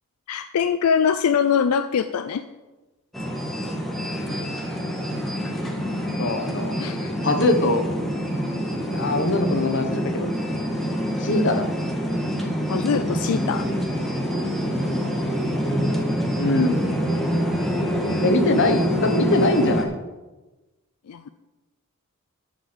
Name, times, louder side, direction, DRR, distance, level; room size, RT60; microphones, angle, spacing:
voice 1, 0.3-2.4 6.8-7.1 11.3-11.4 12.7-13.7 21.1-21.2, left 7 dB, 80° left, 10 dB, 0.4 m, -23 dB
sound 1, 3.1-19.9, equal, ahead, 1.4 m, -26 dB
voice 2, 6.2-6.8 7.2-7.8 8.8-10.3 11.2-11.7 16.4-16.8 18.2-19.9, left 2 dB, 55° left, 7 dB, 1.1 m, -22 dB
9.8 x 5.2 x 7.2 m, 1.1 s
head